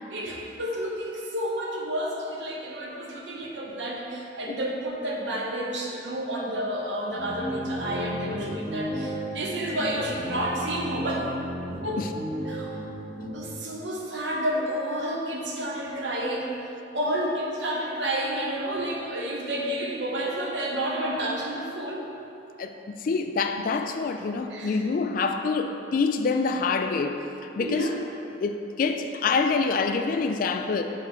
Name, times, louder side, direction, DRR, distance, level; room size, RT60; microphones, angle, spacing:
voice 1, 0.1-11.3 11.8-12.1 12.5-12.8 13.3-16.5 16.9-22.1 24.5-24.8 27.6-28.0, right 1 dB, 80° right, -1 dB, 0.8 m, -30 dB
sound 1, 7.2-13.5, equal, 20° right, 1.1 m, -34 dB
voice 2, 22.6-27.2 27.6-27.9 28.4-30.8, left 4 dB, 50° left, 6 dB, 0.3 m, -26 dB
5.7 x 3.7 x 4.4 m, 2.9 s
head